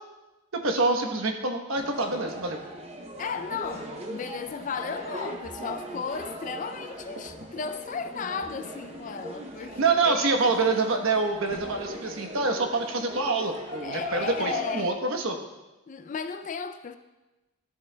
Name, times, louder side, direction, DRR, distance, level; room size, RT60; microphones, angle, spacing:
voice 1, 0.5-2.6 9.7-15.4, right 3 dB, 70° right, 1.0 m, -26 dB
sound 1, 1.7-14.9, right 1 dB, 30° right, 0.7 m, -40 dB
voice 2, 3.2-10.3 13.8-14.9 15.9-17.0, left 5 dB, 35° left, 0.3 m, -34 dB
13.5 x 7.7 x 2.2 m
head